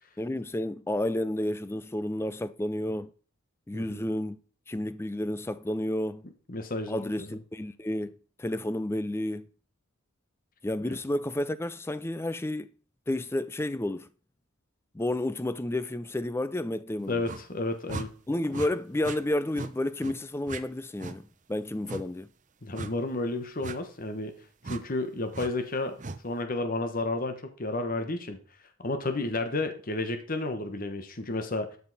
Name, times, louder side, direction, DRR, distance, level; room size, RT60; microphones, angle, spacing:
voice 1, 0.2-3.1 3.7-4.4 4.7-6.2 6.9-9.5 10.6-12.7 13.1-14.1 14.9-17.2 18.3-22.3, left 1 dB, 10° left, 0.4 m, -31 dB
voice 2, 3.7-4.1 6.5-7.4 17.1-18.1 22.6-24.4 24.7-26.0 26.2-28.4 28.8-31.8, left 2 dB, 40° left, 1.1 m, -32 dB
sound 1, 17.2-17.4 17.9-18.1 18.5-18.7 19.0-19.2 19.5-19.7 20.0-20.2 20.5-20.6 21.0-21.2 21.9-22.0 22.7-22.9 23.6-23.8 24.6-24.8 25.3-25.5 26.0-26.2, right 3 dB, 35° right, 0.7 m, -37 dB
12.0 x 5.5 x 4.0 m
head